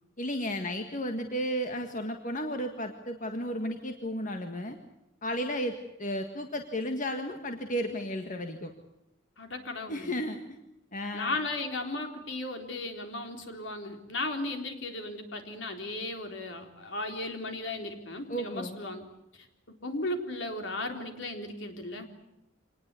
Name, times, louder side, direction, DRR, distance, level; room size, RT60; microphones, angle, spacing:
voice 1, 0.2-4.8 5.2-8.7 9.9-10.6 10.9-11.4 18.3-18.8, equal, 45° left, 5 dB, 1.8 m, -33 dB
voice 2, 9.4-10.2 11.1-19.0 19.8-22.1, left 2 dB, 70° left, 4 dB, 3.9 m, -36 dB
26.5 x 19.5 x 8.4 m, 0.88 s
head